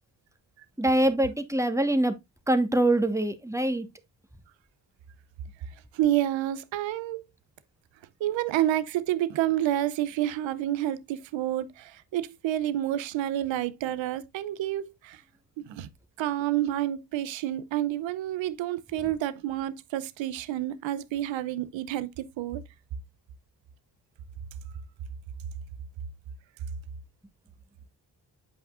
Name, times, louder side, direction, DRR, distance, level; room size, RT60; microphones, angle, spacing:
voice 1, 0.8-2.1 2.5-3.9, right 1 dB, 5° right, 1.3 m, -24 dB
voice 2, 5.9-7.2 8.2-15.2 15.6-15.9 16.2-22.6, right 13 dB, 85° right, 0.7 m, -29 dB
7.8 x 5.6 x 2.4 m
supercardioid pair, 40°, 44 cm